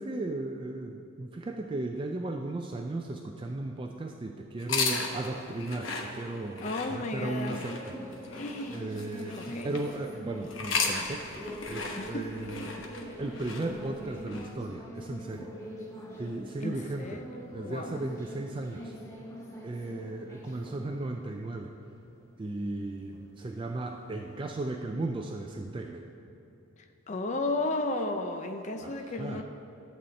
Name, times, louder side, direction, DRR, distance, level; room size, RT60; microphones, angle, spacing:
voice 1, 0.0-8.4 8.7-9.4 9.6-12.7 13.2-15.7 16.2-17.3 17.5-18.9 19.6-21.7 22.4-26.1 28.8-29.4, right 2 dB, 25° right, 3 dB, 0.3 m, -36 dB
sound 1, 4.6-9.9 10.5-14.5, left 4 dB, 65° left, 1.0 m, -35 dB
sound 2, 6.2-24.6, equal, 15° left, 1.0 m, -44 dB
voice 2, 6.6-7.6 8.4-8.9 9.4-9.7 12.0-12.3 12.6-12.8 16.6-17.4 17.6-18.0 27.1-29.4, left 2 dB, 35° left, 5 dB, 0.5 m, -34 dB
12.0 x 4.2 x 7.6 m, 2.9 s
head